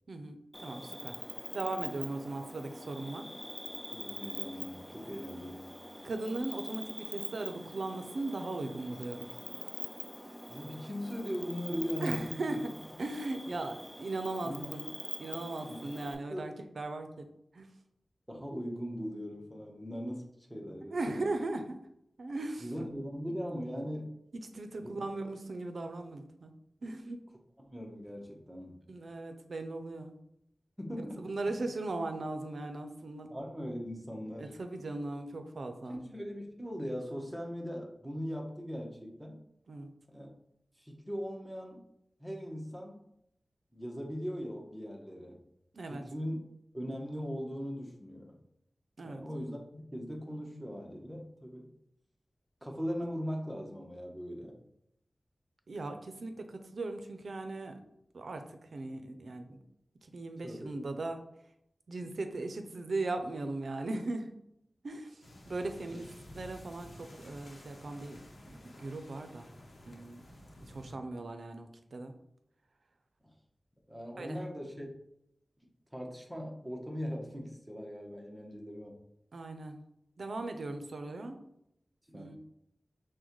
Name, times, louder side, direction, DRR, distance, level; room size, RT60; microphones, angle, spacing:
voice 1, 0.1-1.1 1.5-3.3 6.0-9.3 12.0-12.7 13.0-14.9 15.2-17.3 17.5-17.7 20.8-21.8 22.2-22.7 24.5-26.5 26.8-27.2 28.9-30.2 31.2-33.3 34.4-36.0 39.7-39.9 45.7-46.0 49.0-49.2 55.7-57.8 58.1-58.4 58.7-59.6 60.1-61.2 61.9-64.3 64.8-65.2 65.5-66.1 66.3-68.2 68.5-69.5 69.9-70.2 70.7-72.1 74.2-74.4 79.3-79.8 80.2-81.4 82.1-82.4, right 2 dB, 75° right, 6 dB, 0.5 m, -38 dB
Cricket, 0.5-16.1, equal, 10° left, 0.5 m, -44 dB
voice 2, 3.9-5.7 10.5-12.6 14.4-14.7 15.7-16.0 16.3-16.5 18.3-21.4 22.6-24.1 24.8-24.9 27.6-28.8 30.8-31.2 33.3-34.5 35.9-39.4 40.1-40.3 40.8-41.8 42.2-43.0 43.7-45.4 45.9-46.4 46.7-48.4 49.0-51.7 52.6-54.6 60.4-60.7 65.9-66.0 73.9-74.9 75.9-79.0 82.1-82.4, equal, 10° right, 0 dB, 0.9 m, -39 dB
sound 1, 65.2-70.9, left 1 dB, 85° left, 0.8 m, -52 dB
6.1 x 2.2 x 3.0 m, 0.77 s
wide cardioid pair, 95°, 0 cm